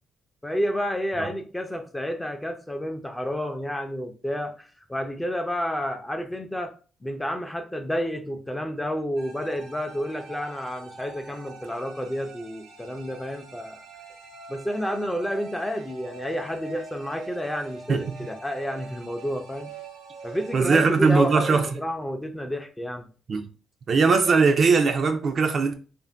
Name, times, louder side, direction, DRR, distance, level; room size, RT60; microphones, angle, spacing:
voice 1, 0.4-6.7 7.0-13.9 14.5-19.7 20.2-23.1, equal, 10° left, 0.5 m, -30 dB
sound 1, 9.2-21.7, right 4 dB, 85° right, 0.7 m, -43 dB
voice 2, 20.5-21.7 23.3-23.5 23.9-25.7, right 4 dB, 50° right, 0.4 m, -20 dB
2.5 x 2.1 x 3.3 m
cardioid pair, 90°, 0 cm